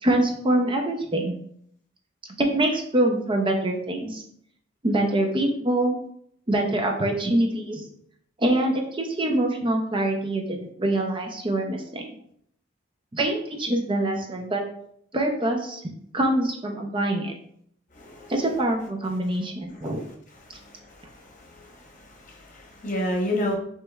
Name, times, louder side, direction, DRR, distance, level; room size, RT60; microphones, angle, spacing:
voice 1, 0.0-1.3 2.4-4.2 4.8-6.0 6.5-7.8 8.4-12.1 13.1-14.6 15.1-17.3 18.3-20.0, right 1 dB, 25° right, 2 dB, 0.5 m, -24 dB
voice 2, 17.9-18.3 20.9-21.0 21.3-21.7 22.3-23.6, left 1 dB, 40° left, 0 dB, 1.0 m, -29 dB
6.5 x 3.1 x 2.3 m, 0.68 s
head